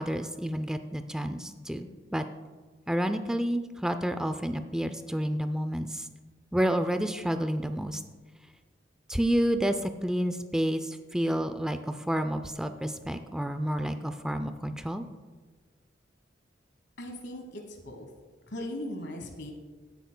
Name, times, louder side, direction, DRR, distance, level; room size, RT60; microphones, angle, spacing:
voice 1, 0.0-2.3 2.9-6.1 6.5-8.0 9.1-15.0, equal, 5° right, 8 dB, 0.3 m, -30 dB
voice 2, 17.0-18.1 18.5-19.5, left 1 dB, 65° left, 3 dB, 1.2 m, -38 dB
16.0 x 8.2 x 2.2 m, 1.3 s
head